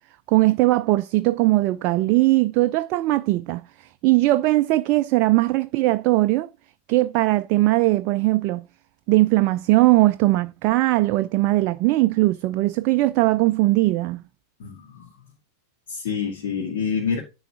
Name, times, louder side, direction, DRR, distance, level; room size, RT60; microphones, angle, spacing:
voice 1, 0.3-6.5 6.9-8.6 9.1-14.2, right 19 dB, 40° right, 0.4 m, -20 dB
voice 2, 14.6-15.1 15.9-17.2, left 6 dB, 55° left, 2.3 m, -27 dB
10.5 x 3.9 x 6.1 m
figure-of-eight pair, 90°, 0 cm